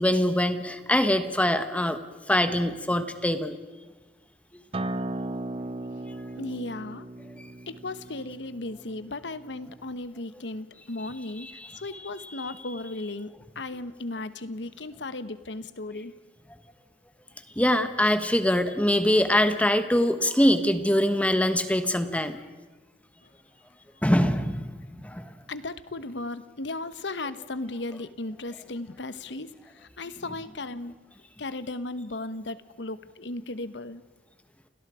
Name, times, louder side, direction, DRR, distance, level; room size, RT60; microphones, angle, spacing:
voice 1, 0.0-2.0 2.3-3.5 11.4-11.7 12.4-12.5 17.6-22.4 24.0-24.8 25.0-25.3, left 1 dB, 10° left, 9 dB, 1.2 m, -23 dB
Acoustic guitar, 4.7-9.9, right 2 dB, 30° right, 0.6 m, -36 dB
voice 2, 6.4-7.0 7.7-11.5 11.8-16.1 25.5-31.0 31.4-34.0, left 2 dB, 85° left, 13 dB, 1.1 m, -36 dB
29.0 x 19.0 x 5.0 m, 1.3 s
head